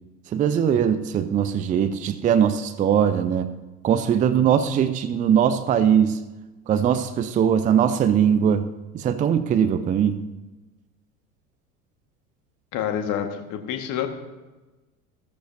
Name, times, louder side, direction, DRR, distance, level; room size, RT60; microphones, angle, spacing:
voice 1, 0.3-3.5 3.8-6.2 6.7-8.7 8.9-10.2, right 8 dB, 20° right, 12 dB, 0.6 m, -21 dB
voice 2, 12.7-14.1, left 9 dB, 40° left, 5 dB, 1.7 m, -27 dB
15.5 x 13.5 x 2.7 m, 1.1 s
figure-of-eight pair, 75°, 45 cm